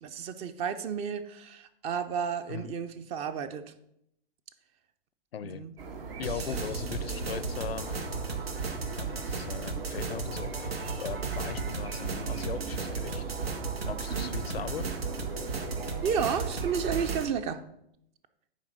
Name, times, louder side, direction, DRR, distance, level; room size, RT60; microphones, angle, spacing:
voice 1, 0.0-3.6 5.4-5.7 14.1-14.3 16.0-17.6, right 7 dB, 20° right, 12 dB, 0.4 m, -32 dB
voice 2, 5.3-5.6 6.2-8.2 9.0-10.7 11.0-13.2 13.6-14.9, left 8 dB, 85° left, 16 dB, 0.6 m, -39 dB
sound 1, 5.8-17.2, right 5 dB, 70° right, 1.6 m, -40 dB
sound 2, 6.2-17.3, right 4 dB, 90° right, 1.3 m, -35 dB
9.3 x 3.5 x 6.2 m, 0.77 s
hypercardioid pair, 120°, 30 cm